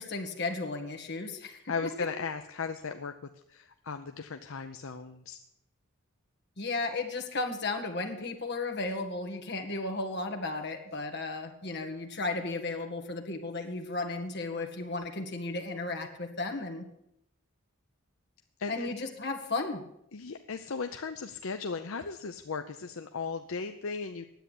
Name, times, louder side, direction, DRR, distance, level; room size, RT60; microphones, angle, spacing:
voice 1, 0.0-1.9 6.6-16.8 18.7-19.8, left 3 dB, 50° left, 4 dB, 1.8 m, -34 dB
voice 2, 1.7-3.1 3.5-5.4 18.6-18.9 20.1-24.3, left 5 dB, 70° left, 7 dB, 0.6 m, -36 dB
10.0 x 8.2 x 9.9 m, 0.79 s
head